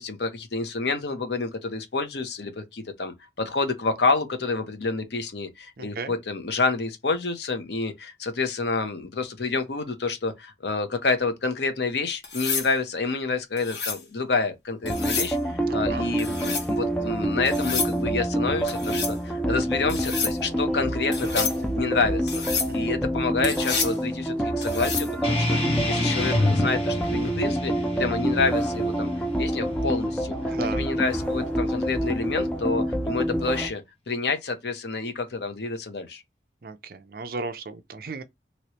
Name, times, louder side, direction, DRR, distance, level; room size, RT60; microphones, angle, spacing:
voice 1, 0.0-22.4 22.7-25.6 25.9-36.2, left 4 dB, 65° left, 0.8 m, -28 dB
voice 2, 5.8-6.1 15.7-16.1 22.7-22.9 30.5-30.8 36.6-38.2, right 3 dB, 50° right, 0.5 m, -35 dB
sound 1, 12.2-12.7 13.6-14.0 14.9-15.3 16.2-16.7 17.5-17.9 18.7-19.2 19.9-20.3 21.1-21.6 22.3-22.7 23.4-24.0 24.6-25.1 27.0-27.3, left 5 dB, 90° left, 1.3 m, -29 dB
sound 2, 14.8-33.7, right 1 dB, 5° left, 0.5 m, -27 dB
sound 3, 25.2-30.3, left 2 dB, 35° left, 1.1 m, -28 dB
3.1 x 2.9 x 2.9 m
head